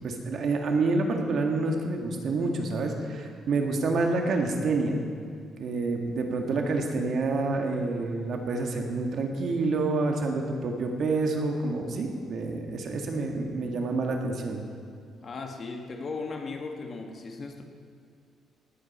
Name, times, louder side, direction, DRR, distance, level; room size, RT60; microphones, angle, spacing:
voice 1, 0.0-5.0 5.6-14.6, right 3 dB, 55° right, 3 dB, 1.8 m, -28 dB
voice 2, 15.2-17.6, left 4 dB, 40° left, 4 dB, 1.4 m, -37 dB
18.5 x 9.0 x 5.5 m, 2.3 s
cardioid pair, 130°, 0 cm